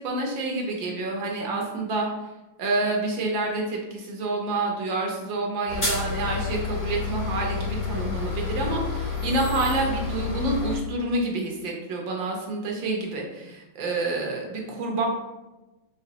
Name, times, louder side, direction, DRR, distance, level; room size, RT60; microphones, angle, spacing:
voice 1, 0.0-2.1 2.6-15.1, right 2 dB, 70° right, 0 dB, 1.5 m, -28 dB
sound 1, 5.7-10.8, left 5 dB, 25° left, 1.2 m, -29 dB
5.0 x 3.8 x 2.8 m, 1.0 s
omnidirectional pair, 2.3 m